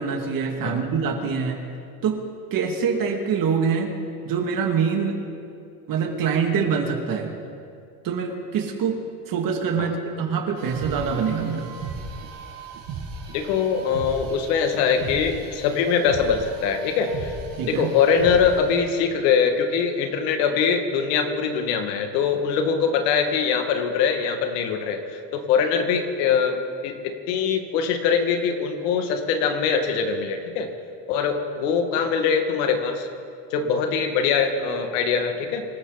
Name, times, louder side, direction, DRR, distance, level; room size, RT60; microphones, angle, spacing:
voice 1, 0.0-1.6 2.0-2.2 2.5-3.9 4.2-5.2 5.9-7.3 8.0-9.0 9.3-11.7 17.6-17.9, right 6 dB, 45° right, 3 dB, 2.3 m, -24 dB
sound 1, 10.6-18.8, right 4 dB, 70° right, 4.3 m, -36 dB
voice 2, 13.3-17.3 17.7-26.6 26.8-30.7 31.1-33.1 33.5-35.7, left 6 dB, 80° left, 5 dB, 2.1 m, -23 dB
25.0 x 13.0 x 4.1 m, 2.4 s
supercardioid pair, 115°, 46 cm